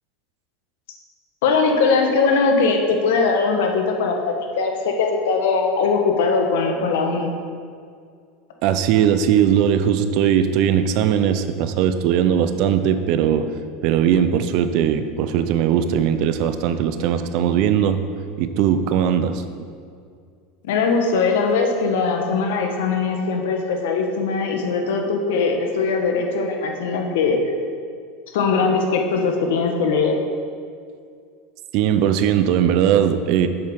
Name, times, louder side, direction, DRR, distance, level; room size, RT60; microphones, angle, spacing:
voice 1, 1.4-7.3 20.6-27.4 28.3-30.2, left 4 dB, 80° left, 3 dB, 1.1 m, -20 dB
voice 2, 8.6-13.4 13.8-18.0 18.4-19.7 31.7-33.5, right 9 dB, 55° right, 10 dB, 0.5 m, -19 dB
7.8 x 7.0 x 3.6 m, 2.2 s
supercardioid pair, 145°, 0 cm